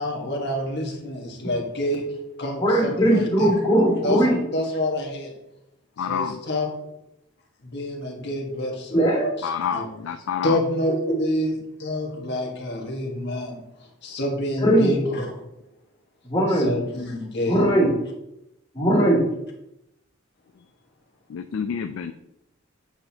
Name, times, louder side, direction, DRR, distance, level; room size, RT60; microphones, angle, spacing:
voice 1, 0.0-3.6 4.0-5.3 6.1-6.9 7.6-9.0 9.4-9.9 10.4-13.6 14.0-15.4 16.5-17.7, left 1 dB, 55° left, 0 dB, 1.4 m, -28 dB
voice 2, 2.6-4.4 8.9-9.3 14.6-15.0 16.2-16.7 17.5-17.9 18.7-19.2, right 1 dB, 15° left, -11 dB, 2.2 m, -19 dB
voice 3, 6.0-6.4 9.4-10.6 21.3-22.1, left 7 dB, 70° left, 8 dB, 0.4 m, -28 dB
7.9 x 5.9 x 2.8 m, 0.85 s
head